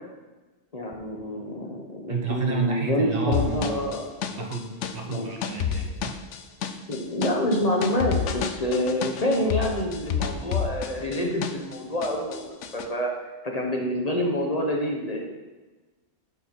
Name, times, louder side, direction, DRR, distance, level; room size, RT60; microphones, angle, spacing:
voice 1, 0.7-4.1 5.1-5.3 6.9-13.1 13.4-15.2, left 1 dB, 35° left, 1 dB, 1.0 m, -27 dB
voice 2, 2.1-3.8 4.3-6.2, right 5 dB, 55° right, 2 dB, 1.1 m, -30 dB
sound 1, 3.3-11.8 12.0-12.9, left 7 dB, 85° left, 1.0 m, -30 dB
8.0 x 4.5 x 5.9 m, 1.2 s
omnidirectional pair, 1.2 m